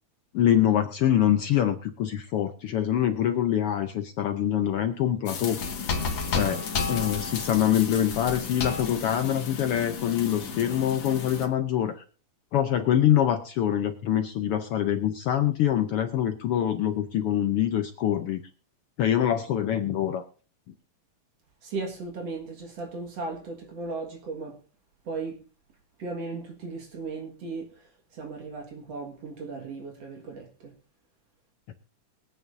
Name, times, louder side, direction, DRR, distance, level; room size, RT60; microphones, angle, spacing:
voice 1, 0.3-5.6 6.3-6.6 6.9-12.0 12.5-18.4 19.0-20.3 31.7-31.8, left 10 dB, 80° left, 8 dB, 1.2 m, -25 dB
sound 1, 5.3-11.5, left 5 dB, 60° left, 2.7 m, -32 dB
voice 2, 21.6-24.6 25.0-25.4 26.0-30.7, right 3 dB, 60° right, 2 dB, 2.7 m, -36 dB
23.0 x 9.0 x 2.6 m, 0.36 s
omnidirectional pair, 3.5 m